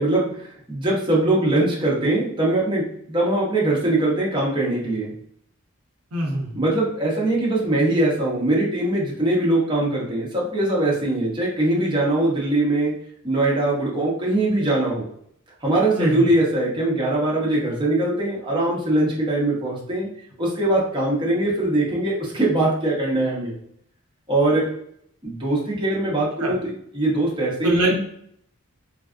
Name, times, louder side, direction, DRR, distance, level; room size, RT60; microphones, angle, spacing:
voice 1, 0.0-5.1 6.5-12.9 13.2-15.0 15.6-20.1 20.4-23.5 24.3-24.7 25.2-27.9, right 2 dB, 20° right, -5 dB, 0.8 m, -22 dB
voice 2, 6.1-6.6 15.9-16.3 26.4-26.5 27.6-27.9, equal, 85° right, 0 dB, 0.7 m, -23 dB
3.3 x 2.4 x 2.4 m, 0.68 s
head